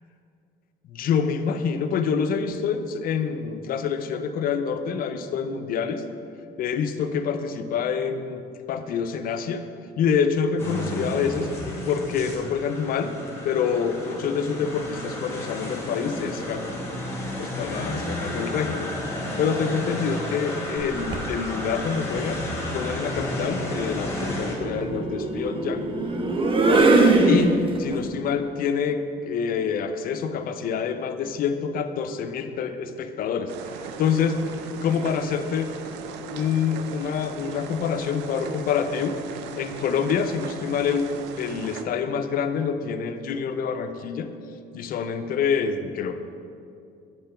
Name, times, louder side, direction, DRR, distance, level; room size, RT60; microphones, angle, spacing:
voice 1, 0.9-6.0 6.6-8.4 8.7-9.7 10.0-11.5 11.8-13.1 13.4-16.7 17.4-22.4 22.7-25.9 27.2-33.5 34.0-34.4 34.8-35.7 36.3-39.2 39.6-41.1 41.4-44.3 44.7-46.2, left 6 dB, 60° left, 8 dB, 0.5 m, -26 dB
sound 1, 10.6-24.6, left 1 dB, 15° left, 1.6 m, -32 dB
sound 2, 20.8-21.3 22.7-28.0, right 2 dB, 30° right, 0.7 m, -22 dB
sound 3, 33.5-41.8, right 6 dB, 90° right, 0.5 m, -38 dB
7.9 x 3.7 x 5.5 m, 2.6 s
cardioid pair, 110°, 17 cm